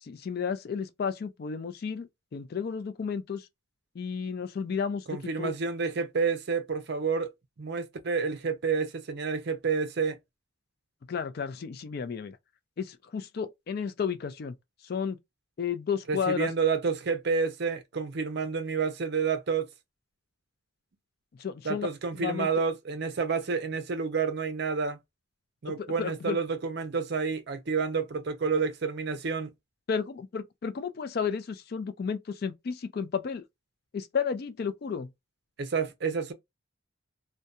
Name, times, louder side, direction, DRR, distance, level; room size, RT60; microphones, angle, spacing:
voice 1, 0.0-3.5 4.0-5.5 11.1-12.4 12.8-14.6 14.8-15.2 15.6-16.5 21.4-21.9 22.2-22.5 25.8-26.4 29.9-33.4 33.9-35.1, left 6 dB, 45° left, 0.3 m, -32 dB
voice 2, 5.1-7.3 7.6-10.2 16.1-19.7 21.6-25.0 25.6-29.5 35.6-36.3, right 5 dB, 50° right, 0.5 m, -29 dB
2.7 x 2.2 x 2.3 m
head